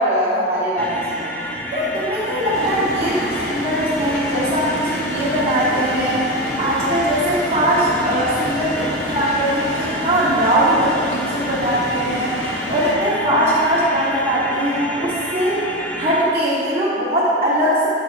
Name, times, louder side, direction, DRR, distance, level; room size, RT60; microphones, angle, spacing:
voice 1, 0.0-1.3 1.7-6.2 6.5-12.3 12.7-15.6 15.9-17.9, equal, 35° right, -12 dB, 1.4 m, -20 dB
sound 1, 0.8-16.2, left 1 dB, 10° left, 0.5 m, -29 dB
sound 2, 2.5-12.9, equal, 65° left, 1.6 m, -29 dB
7.0 x 5.1 x 4.7 m, 2.6 s
head